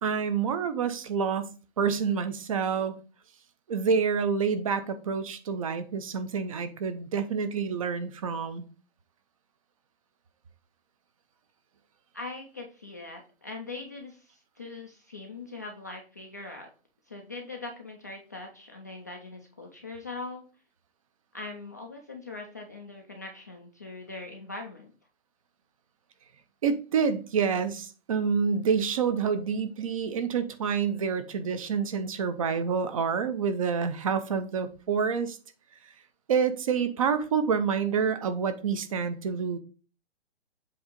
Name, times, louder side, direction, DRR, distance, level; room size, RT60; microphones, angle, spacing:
voice 1, 0.0-1.5 1.8-3.0 3.7-8.6 26.6-35.4 36.3-39.6, right 6 dB, 35° right, 0.6 m, -28 dB
voice 2, 12.1-16.7 17.1-20.5 21.3-24.9, left 3 dB, 20° left, 0.3 m, -41 dB
7.7 x 2.8 x 5.0 m
hypercardioid pair, 165°, 31 cm